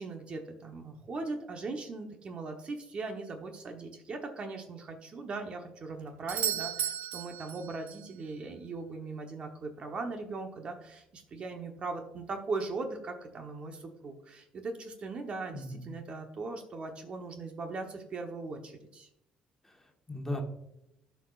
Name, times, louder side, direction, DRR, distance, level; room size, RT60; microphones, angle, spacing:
voice 1, 0.0-19.1, right 3 dB, 45° right, 4 dB, 1.0 m, -39 dB
Doorbell, 6.3-8.1 12.2-12.3, right 10 dB, 70° right, 0.4 m, -34 dB
voice 2, 15.5-15.9 19.6-20.4, left 1 dB, 15° left, 2 dB, 1.4 m, -38 dB
13.5 x 4.8 x 2.5 m, 0.81 s
cardioid pair, 90°, 3 cm